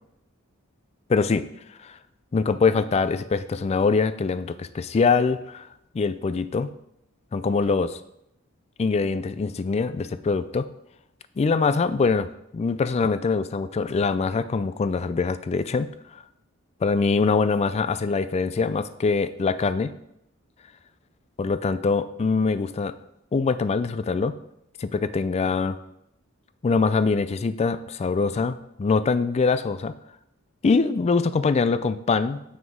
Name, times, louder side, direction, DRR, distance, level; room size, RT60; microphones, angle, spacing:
voice 1, 1.1-1.5 1.8-2.0 2.3-5.7 5.9-6.7 7.3-8.0 8.8-10.7 11.4-16.2 16.8-19.9 21.4-22.9 23.3-24.3 24.8-25.8 26.6-29.9 30.6-32.4, left 4 dB, 30° left, 13 dB, 0.3 m, -23 dB
7.3 x 6.1 x 3.5 m, 0.79 s
head